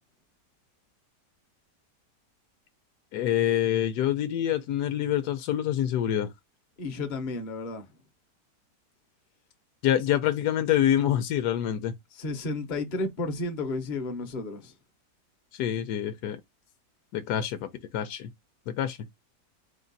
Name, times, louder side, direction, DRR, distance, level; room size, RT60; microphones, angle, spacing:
voice 1, 3.1-6.3 9.8-11.9 15.5-16.4 17.1-18.3 18.7-19.0, left 11 dB, 75° left, 1.1 m, -26 dB
voice 2, 6.8-7.8 12.1-14.7, left 2 dB, 40° left, 0.7 m, -32 dB
4.3 x 2.4 x 3.9 m
omnidirectional pair, 1.8 m